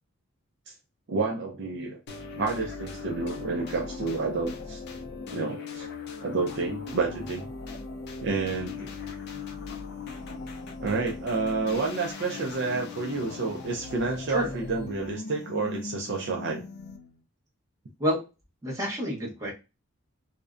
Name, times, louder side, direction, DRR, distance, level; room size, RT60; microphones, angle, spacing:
voice 1, 1.1-2.0 2.4-4.8 5.3-5.9 6.2-7.5 8.2-8.9 10.8-16.6, right 4 dB, 55° right, 1 dB, 0.4 m, -30 dB
sound 1, 2.1-17.2, left 4 dB, 50° left, 0.4 m, -39 dB
voice 2, 18.6-19.5, equal, 15° right, -4 dB, 0.9 m, -28 dB
2.5 x 2.1 x 2.4 m, 0.28 s
head